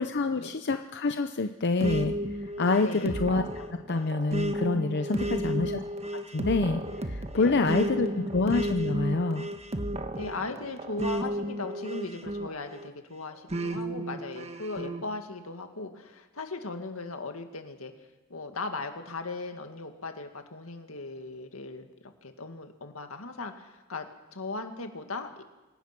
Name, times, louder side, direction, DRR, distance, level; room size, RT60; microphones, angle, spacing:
voice 1, 0.0-2.1 2.6-5.8 6.3-9.5, left 3 dB, 55° left, 7 dB, 0.7 m, -27 dB
sound 1, 1.8-12.9 13.5-15.0, right 1 dB, 30° right, 1.3 m, -33 dB
voice 2, 2.8-3.2 5.1-5.7 7.3-8.3 10.2-17.9 18.3-25.4, left 3 dB, 80° left, 6 dB, 2.1 m, -38 dB
26.0 x 17.0 x 6.1 m, 1.1 s
head